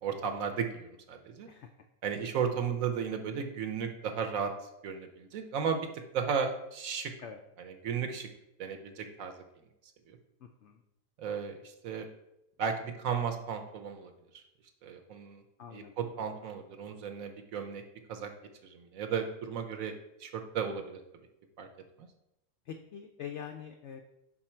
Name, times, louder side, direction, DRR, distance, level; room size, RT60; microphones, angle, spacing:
voice 1, 0.0-1.5 2.0-4.5 4.8-5.9 6.1-7.1 7.6-8.3 8.6-9.3 10.1-10.2 11.2-12.1 12.6-14.4 14.8-15.4 15.7-17.8 18.1-18.3 18.6-19.9 20.2-21.0 21.6-21.7 22.0-22.1, right 6 dB, 65° right, 6 dB, 1.0 m, -34 dB
voice 2, 10.4-10.8 15.6-15.9 22.7-24.0, left 8 dB, 80° left, 5 dB, 0.6 m, -44 dB
5.9 x 4.6 x 4.3 m, 0.87 s
omnidirectional pair, 1.7 m